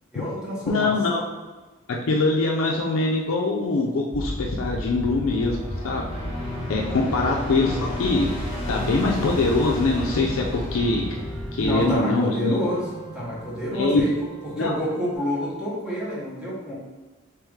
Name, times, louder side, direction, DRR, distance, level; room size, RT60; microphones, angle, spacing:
voice 1, 0.1-1.2 7.1-7.3 11.6-12.8 13.1-14.1 14.4-16.7, equal, 5° right, -7 dB, 0.9 m, -28 dB
voice 2, 0.7-1.2 1.9-5.6 5.8-6.1 6.7-8.4 8.7-11.2 11.5-12.6 13.7-14.0 14.6-14.8, left 3 dB, 85° left, -1 dB, 0.5 m, -23 dB
sound 1, 4.1-12.0, left 1 dB, 15° left, 0.3 m, -33 dB
sound 2, 4.3-11.6, left 1 dB, 30° left, 1.1 m, -34 dB
sound 3, 6.1-15.2, right 1 dB, 85° right, 1.1 m, -41 dB
3.2 x 3.0 x 3.5 m, 1.2 s
head